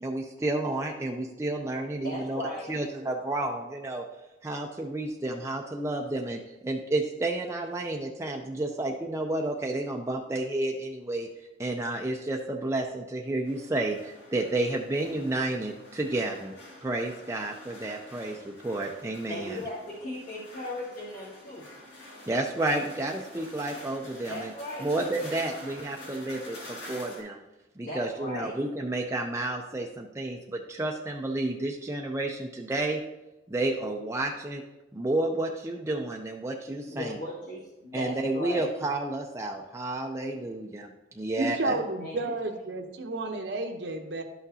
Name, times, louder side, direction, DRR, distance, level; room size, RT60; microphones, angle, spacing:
voice 1, 0.0-2.4 2.7-4.0 4.4-11.3 11.6-16.5 16.8-19.6 22.3-24.5 24.8-27.4 27.8-33.0 33.5-34.6 34.9-37.2 37.9-40.9 41.2-41.8, right 2 dB, 15° right, 0 dB, 0.4 m, -31 dB
voice 2, 2.0-2.7 19.3-21.7 24.3-24.9 27.8-28.5 36.8-38.7 41.6-42.3, left 1 dB, 45° left, -9 dB, 2.2 m, -37 dB
sound 1, 13.4-27.2, left 1 dB, 70° left, 2.5 m, -47 dB
voice 3, 41.4-44.2, right 2 dB, 70° right, 4 dB, 0.8 m, -31 dB
11.5 x 6.0 x 2.8 m, 0.99 s
head